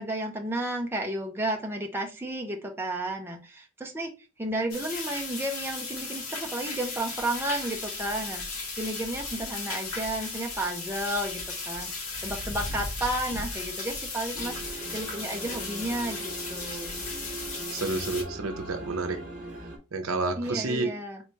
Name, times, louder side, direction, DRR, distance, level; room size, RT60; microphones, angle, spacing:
voice 1, 0.0-4.1 4.4-8.5 8.8-14.6 14.9-17.0 20.4-21.2, right 1 dB, 10° right, 0.6 m, -32 dB
sound 1, 4.7-18.2, left 3 dB, 85° left, 1.5 m, -36 dB
sound 2, 14.4-19.8, right 2 dB, 35° right, 1.6 m, -40 dB
voice 2, 17.7-19.2 19.9-21.0, right 3 dB, 75° right, 0.7 m, -30 dB
4.3 x 3.3 x 2.8 m
head